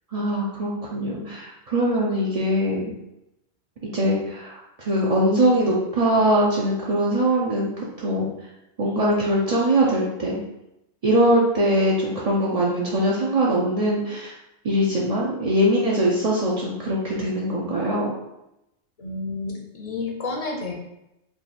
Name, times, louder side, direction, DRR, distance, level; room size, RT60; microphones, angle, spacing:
voice 1, 0.1-2.9 3.8-8.3 8.8-10.4 11.0-14.3 14.6-18.1, right 1 dB, 50° right, -5 dB, 0.4 m, -22 dB
voice 2, 19.0-20.7, left 3 dB, 45° left, 0 dB, 0.5 m, -30 dB
3.4 x 2.4 x 4.1 m, 0.88 s
omnidirectional pair, 1.3 m